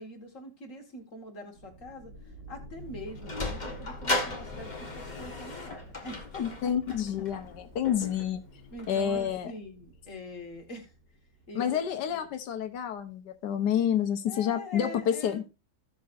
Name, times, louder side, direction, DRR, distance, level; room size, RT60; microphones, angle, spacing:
voice 1, 0.0-7.5 8.7-10.9 11.5-12.3 14.3-15.4, left 1 dB, 50° left, 2.1 m, -44 dB
sound 1, 1.5-13.0, right 1 dB, 75° right, 7.1 m, -49 dB
Sliding door, 2.8-9.4, left 2 dB, 25° left, 1.6 m, -37 dB
voice 2, 6.4-8.4 8.9-9.5 11.6-15.4, left 9 dB, 80° left, 1.5 m, -29 dB
16.0 x 6.3 x 2.6 m
omnidirectional pair, 1.8 m